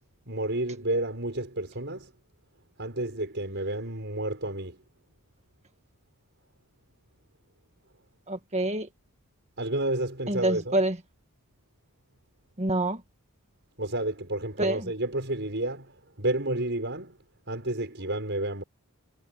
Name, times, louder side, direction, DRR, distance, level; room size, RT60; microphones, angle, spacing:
voice 1, 0.3-2.1 2.8-4.8 9.6-10.8 13.8-17.2 17.5-18.6, right 1 dB, 50° right, 6.6 m, -30 dB
voice 2, 8.3-8.9 10.3-11.0 12.6-13.0 14.6-14.9, right 1 dB, 30° right, 1.8 m, -27 dB
head